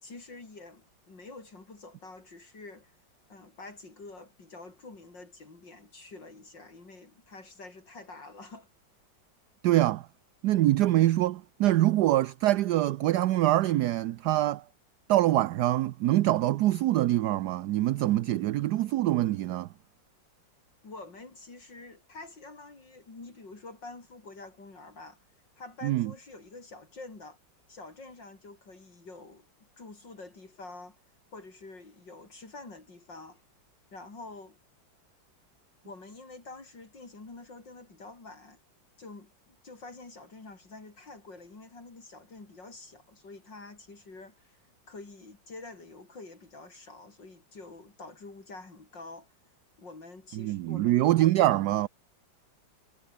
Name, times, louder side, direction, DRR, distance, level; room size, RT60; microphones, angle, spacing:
voice 1, 0.0-2.9 3.3-8.7 20.8-25.2 25.6-27.4 27.7-31.0 31.3-33.4 33.9-34.6 35.9-38.6 39.0-44.6 44.9-49.3 49.8-51.4, left 3 dB, 65° left, 5.4 m, -47 dB
voice 2, 9.6-10.1 10.4-14.6 15.1-19.7 25.8-26.1 50.3-51.9, right 15 dB, 70° right, 1.1 m, -24 dB
omnidirectional pair, 2.1 m